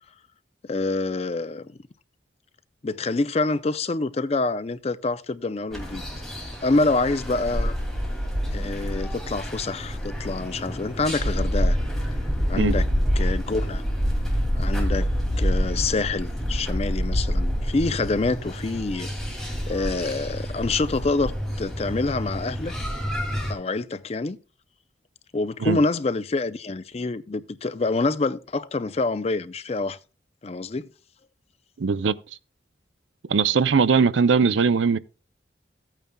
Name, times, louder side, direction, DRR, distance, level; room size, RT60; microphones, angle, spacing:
voice 1, 0.7-1.7 2.8-6.0 6.6-7.8 8.5-11.8 12.5-12.9 13.2-13.8 14.6-15.1 15.4-19.1 19.7-22.7 23.5-24.4 25.3-30.0 30.4-30.9, left 3 dB, 35° left, 0.4 m, -26 dB
sound 1, 5.7-23.5, equal, ahead, 2.4 m, -27 dB
voice 2, 31.8-32.2 33.3-35.0, right 5 dB, 85° right, 0.5 m, -20 dB
15.5 x 9.0 x 2.2 m
head